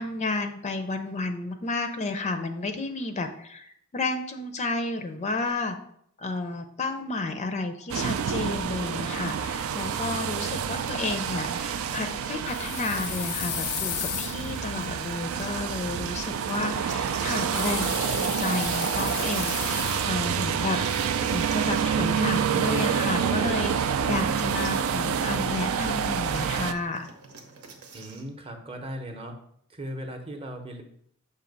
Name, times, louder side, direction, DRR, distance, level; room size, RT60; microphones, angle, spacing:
voice 1, 0.0-5.8 6.2-21.0 21.3-27.1, left 3 dB, 30° left, 7 dB, 0.4 m, -32 dB
sound 1, 7.9-26.7, right 7 dB, 65° right, 0.4 m, -28 dB
sound 2, 11.8-14.5 15.3-17.9 19.3-22.3 22.5-22.6 24.5-28.3, right 4 dB, 85° right, 0.9 m, -46 dB
sound 3, 12.5-15.5 17.5-20.3 20.6-21.7, left 12 dB, 85° left, 0.4 m, -35 dB
voice 2, 27.9-29.4 29.7-30.8, equal, 25° right, 4 dB, 0.7 m, -37 dB
7.0 x 2.7 x 5.2 m, 0.69 s
head